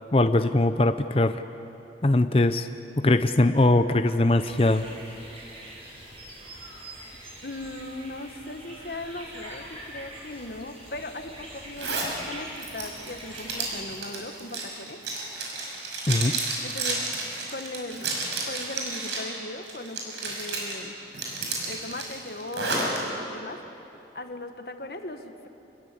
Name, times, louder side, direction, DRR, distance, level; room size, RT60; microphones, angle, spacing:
voice 1, 0.1-1.4 2.0-2.7 3.0-4.8 16.1-16.3, left 2 dB, 30° left, 9 dB, 0.6 m, -21 dB
sound 1, 4.4-13.9, right 1 dB, 30° right, 7.1 m, -44 dB
voice 2, 7.4-15.0 16.6-17.1 17.5-18.1 18.5-21.0 21.6-23.0 23.3-23.6 24.1-25.5, left 2 dB, 60° left, 7 dB, 1.6 m, -38 dB
Zipper (clothing), 11.8-12.1 12.6-19.3 19.7-20.7 21.1-23.0, right 3 dB, 80° right, 5.9 m, -31 dB
27.5 x 21.0 x 8.5 m, 3.0 s
head